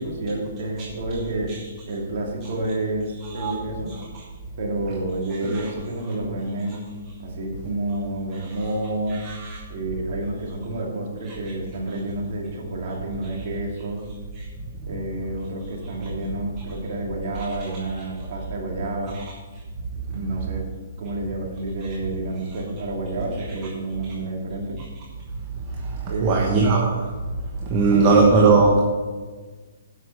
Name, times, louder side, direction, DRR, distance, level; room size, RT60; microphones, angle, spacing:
voice 1, 0.0-1.6 1.9-3.9 4.6-6.8 7.2-9.2 9.7-14.1 14.9-19.2 20.1-20.7 21.0-24.8 26.1-26.6 27.9-28.2, right 2 dB, 55° right, -1 dB, 2.6 m, -29 dB
voice 2, 9.3-9.6 26.2-26.9 27.7-28.8, right 3 dB, 30° right, -1 dB, 1.2 m, -17 dB
8.0 x 6.0 x 6.8 m, 1.4 s
hypercardioid pair, 155°, 0 cm